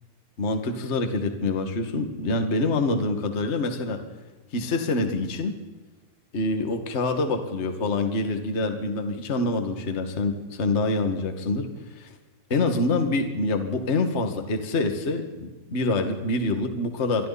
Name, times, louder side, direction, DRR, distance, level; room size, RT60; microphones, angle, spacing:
voice 1, 0.4-4.0 4.5-5.6 6.3-11.7 11.9-12.1 12.5-15.2 15.7-17.3, left 2 dB, 30° left, 6 dB, 1.4 m, -26 dB
27.5 x 23.5 x 4.3 m, 1.2 s
omnidirectional pair, 4.3 m